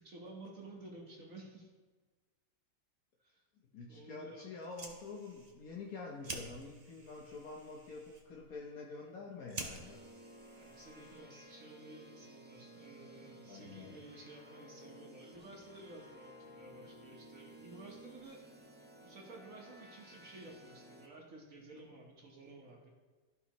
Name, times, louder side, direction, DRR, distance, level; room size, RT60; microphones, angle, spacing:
voice 1, 0.0-1.7 3.2-3.4 3.9-4.5 10.5-18.4 19.0-22.9, right 2 dB, 65° right, -2 dB, 1.6 m, -53 dB
voice 2, 3.7-10.0 13.4-13.9, left 4 dB, 75° left, -1 dB, 1.4 m, -47 dB
Fire, 4.5-11.5, right 3 dB, 35° right, 0.8 m, -50 dB
sound 1, 9.6-21.1, right 1 dB, 15° right, 0.4 m, -56 dB
13.5 x 5.5 x 3.0 m, 1.4 s
omnidirectional pair, 1.6 m